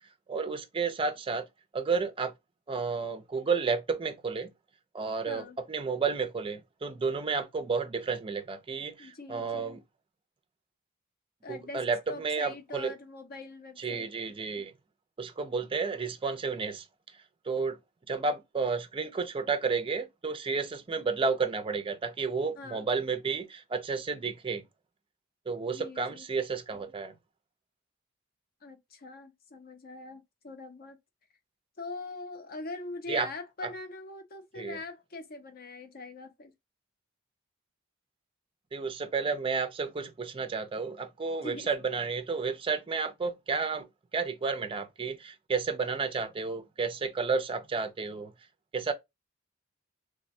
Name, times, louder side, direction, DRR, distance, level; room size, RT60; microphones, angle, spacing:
voice 1, 0.3-1.5 1.7-2.3 2.7-4.5 4.9-9.8 11.5-12.9 13.8-14.7 15.2-16.9 17.4-17.8 18.1-24.6 25.5-27.1 33.1-33.3 33.6-33.7 34.6-34.8 38.7-43.9 44.1-48.3 48.7-48.9, right 4 dB, 25° right, 0.4 m, -31 dB
voice 2, 5.3-5.6 9.0-9.8 11.4-14.1 14.6-14.7 21.0-21.1 22.6-22.9 25.7-26.2 28.6-31.0 31.8-36.5 41.4-41.7, left 3 dB, 45° left, 0.6 m, -43 dB
3.3 x 2.1 x 2.5 m
head